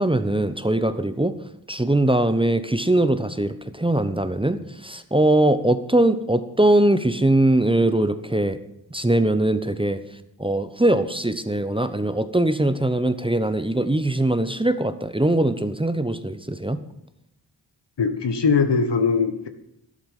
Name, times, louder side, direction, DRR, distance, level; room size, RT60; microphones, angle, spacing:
voice 1, 0.0-1.4 1.7-8.6 8.9-10.0 10.4-16.8, right 1 dB, 10° right, 11 dB, 0.9 m, -21 dB
voice 2, 18.0-19.5, left 5 dB, 65° left, 9 dB, 1.4 m, -21 dB
12.0 x 11.5 x 5.5 m, 0.80 s
cardioid pair, 45°, 45 cm